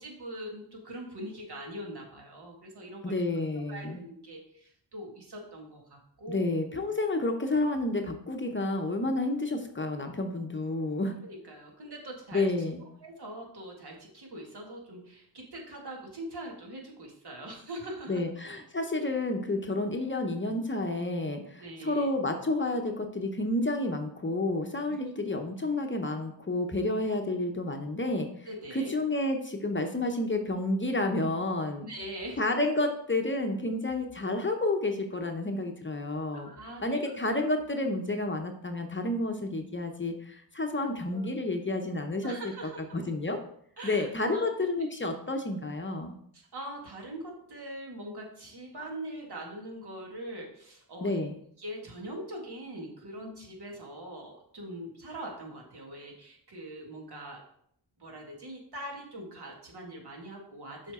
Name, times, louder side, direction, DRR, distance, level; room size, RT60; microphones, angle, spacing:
voice 1, 0.0-3.1 3.7-6.5 11.2-12.5 13.0-18.2 18.9-19.0 21.6-22.1 24.9-25.0 28.4-28.9 31.8-32.4 36.4-37.0 41.1-41.3 42.2-42.8 43.8-44.5 46.3-51.2 51.6-57.4 58.0-60.9, right 1 dB, 60° right, 0 dB, 2.0 m, -42 dB
voice 2, 3.0-4.0 6.3-11.2 12.3-12.8 18.1-31.8 32.4-36.5 36.8-42.3 42.9-43.4 43.8-46.1 51.0-51.3, left 2 dB, 25° left, 4 dB, 0.8 m, -30 dB
7.1 x 5.1 x 3.6 m, 0.67 s
wide cardioid pair, 85°, 44 cm